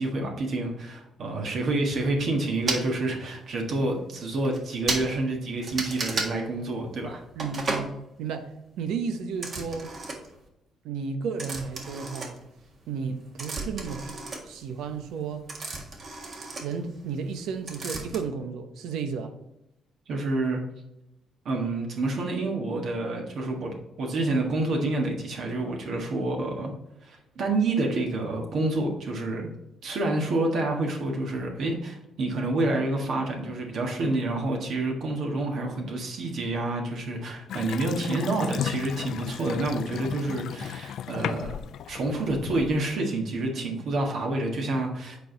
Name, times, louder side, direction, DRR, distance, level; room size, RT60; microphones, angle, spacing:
voice 1, 0.0-7.2 20.1-20.6 21.4-26.7 27.0-29.5 29.8-41.5 41.9-45.2, right 2 dB, 65° right, 1.6 m, -28 dB
sound 1, 2.7-2.8 3.7-3.8 4.2-4.3 4.4-4.6 4.9-5.1 5.6-6.3 7.4-7.9 9.3-10.4 11.4-12.8 13.1-17.4 17.7-18.2, right 3 dB, 50° right, 1.6 m, -33 dB
voice 2, 7.4-7.9 8.2-9.9 10.8-12.4 12.9-14.2 14.4-15.5 16.6-19.4, right 5 dB, 85° right, 0.9 m, -33 dB
Water tap faucet / Sink (filling or washing) / Bathtub (filling or washing), 37.5-43.0, left 9 dB, 75° left, 0.3 m, -35 dB
8.1 x 4.6 x 3.9 m
cardioid pair, 90°, 0 cm